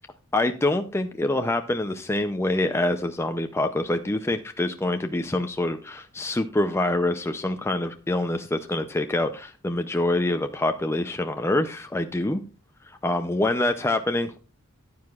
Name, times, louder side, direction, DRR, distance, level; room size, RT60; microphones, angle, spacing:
voice 1, 0.3-12.4 12.9-14.4, left 2 dB, 10° left, 6 dB, 0.5 m, -25 dB
14.5 x 9.4 x 2.4 m, 0.33 s
head